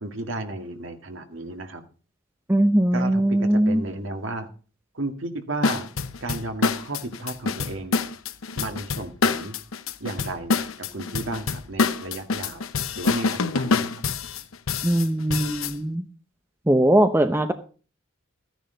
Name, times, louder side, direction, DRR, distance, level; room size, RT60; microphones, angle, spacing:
voice 1, 0.0-1.8 2.9-4.5 5.0-5.9 6.2-8.0 8.6-9.5 10.0-10.5 10.9-12.6 13.0-13.9, right 2 dB, 70° right, 5 dB, 2.0 m, -33 dB
voice 2, 2.5-3.8 14.8-16.0 16.7-17.5, right 1 dB, 10° right, 8 dB, 0.7 m, -20 dB
sound 1, 5.6-15.7, left 4 dB, 85° left, 0.8 m, -26 dB
14.0 x 10.0 x 3.9 m, 0.37 s
head